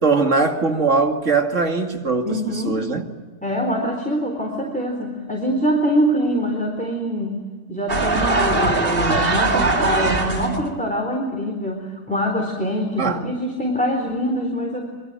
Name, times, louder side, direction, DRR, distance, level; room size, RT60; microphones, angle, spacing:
voice 1, 0.0-3.0 13.0-13.2, right 4 dB, 85° right, 2.6 m, -20 dB
voice 2, 2.2-2.8 3.4-7.4 7.7-14.8, equal, 5° left, 4.1 m, -24 dB
sound 1, 7.9-10.7, right 2 dB, 50° right, 2.3 m, -20 dB
27.0 x 22.5 x 9.1 m
omnidirectional pair, 1.3 m